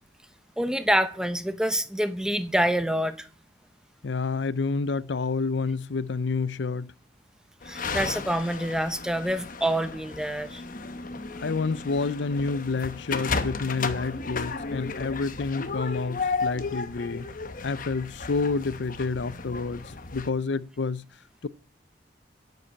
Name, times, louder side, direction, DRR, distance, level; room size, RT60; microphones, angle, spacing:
voice 1, 0.6-3.3 7.7-10.6, right 1 dB, 5° right, 0.9 m, -26 dB
voice 2, 4.0-6.9 11.4-17.3 17.6-21.0 21.4-21.5, left 4 dB, 75° left, 0.6 m, -29 dB
sound 1, 7.6-20.3, left 4 dB, 50° left, 1.0 m, -34 dB
9.8 x 8.0 x 8.9 m
head